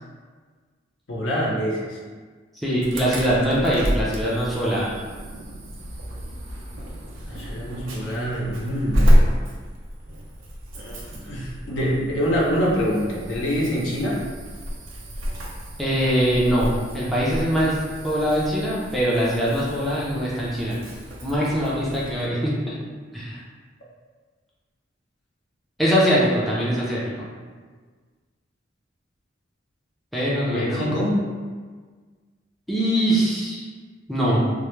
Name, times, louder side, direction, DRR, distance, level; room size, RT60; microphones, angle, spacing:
voice 1, 1.1-2.0 7.3-9.1 10.7-14.2 30.5-31.2, equal, 70° left, -5 dB, 0.6 m, -25 dB
voice 2, 2.6-4.9 15.8-17.8 18.0-20.8 21.2-22.8 23.1-23.4 25.8-27.3 30.1-31.0 32.7-33.7 34.1-34.4, equal, ahead, -8 dB, 0.4 m, -22 dB
Insect / Alarm, 2.8-22.3, equal, 90° right, 0.5 m, -28 dB
2.1 x 2.0 x 3.0 m, 1.5 s
head